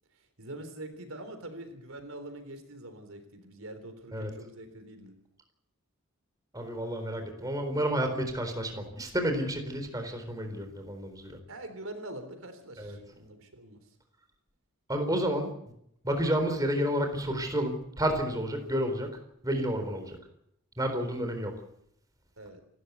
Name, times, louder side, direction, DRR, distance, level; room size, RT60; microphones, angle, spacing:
voice 1, 0.2-5.1 11.5-13.8 22.4-22.6, right 1 dB, 80° right, 9 dB, 3.6 m, -44 dB
voice 2, 6.5-11.4 12.8-13.0 14.9-15.5 16.0-19.1 19.4-20.2 20.8-21.5, equal, 15° right, 5 dB, 4.0 m, -30 dB
28.0 x 13.0 x 8.3 m, 0.75 s
head